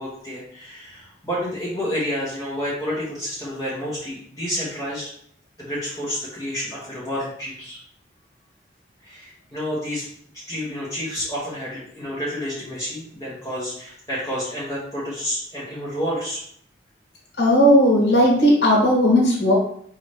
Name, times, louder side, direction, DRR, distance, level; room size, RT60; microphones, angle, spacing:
voice 1, 0.0-5.1 5.6-7.8 9.0-10.1 10.5-16.4, equal, 20° left, -8 dB, 1.1 m, -29 dB
voice 2, 17.4-19.5, equal, 70° left, -3 dB, 1.5 m, -16 dB
4.8 x 2.7 x 3.4 m, 0.63 s
head